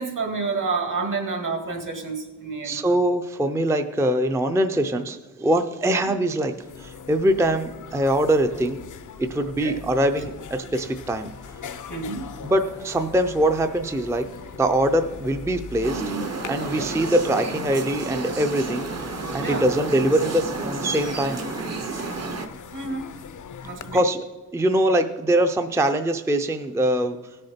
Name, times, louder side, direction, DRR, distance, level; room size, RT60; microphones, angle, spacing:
voice 1, 0.0-2.8 9.6-9.8 11.9-12.2 16.6-17.0 19.4-19.7 22.7-23.1 23.6-24.0, right 4 dB, 65° right, 4 dB, 2.0 m, -29 dB
voice 2, 2.6-8.8 9.2-11.3 12.4-14.3 14.6-16.0 16.5-18.9 19.3-21.5 23.9-24.2 24.5-27.2, right 1 dB, 10° right, 7 dB, 0.4 m, -23 dB
sound 1, 6.5-24.0, left 7 dB, 65° left, 0.6 m, -41 dB
sound 2, 10.9-23.3, right 1 dB, 85° right, 2.9 m, -50 dB
sound 3, 15.8-22.5, right 4 dB, 50° right, 0.8 m, -31 dB
17.0 x 6.6 x 4.2 m, 1.2 s
wide cardioid pair, 175°, 34 cm